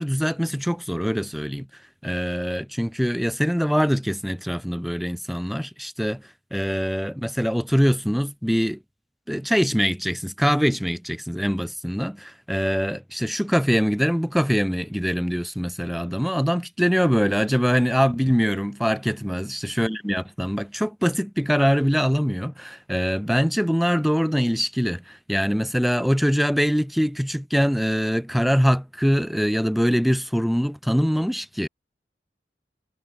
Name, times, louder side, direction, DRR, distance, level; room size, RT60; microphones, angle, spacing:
voice 1, 0.0-1.7 2.0-6.2 6.5-8.8 9.3-31.7, equal, ahead, 1.3 m, -23 dB
head